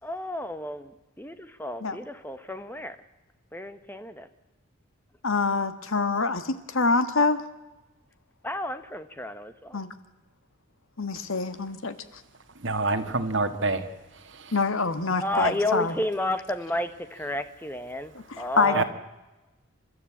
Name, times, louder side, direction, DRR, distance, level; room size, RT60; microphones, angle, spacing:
voice 1, 0.0-3.0 3.5-4.3 8.4-9.8 15.2-18.8, left 1 dB, 10° left, 10 dB, 1.1 m, -31 dB
voice 2, 5.2-7.4 9.7-9.9 11.0-11.9 14.5-15.9 18.3-18.8, left 3 dB, 80° left, 11 dB, 1.5 m, -25 dB
voice 3, 12.6-13.8 14.3-14.5 18.7-18.8, right 3 dB, 65° right, 8 dB, 1.8 m, -27 dB
29.0 x 13.0 x 8.6 m, 1.1 s
head